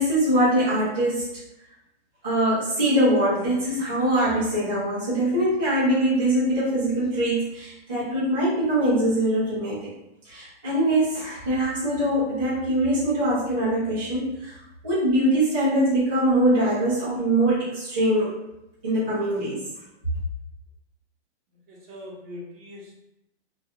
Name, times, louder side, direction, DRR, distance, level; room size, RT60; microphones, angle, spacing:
voice 1, 0.0-1.3 2.2-9.9 10.2-14.6 14.8-18.3 18.8-19.6, right 1 dB, 10° right, -13 dB, 0.3 m, -23 dB
voice 2, 21.7-22.9, left 1 dB, 35° right, -4 dB, 0.7 m, -41 dB
2.2 x 2.2 x 2.8 m, 0.84 s
hypercardioid pair, 160°, 34 cm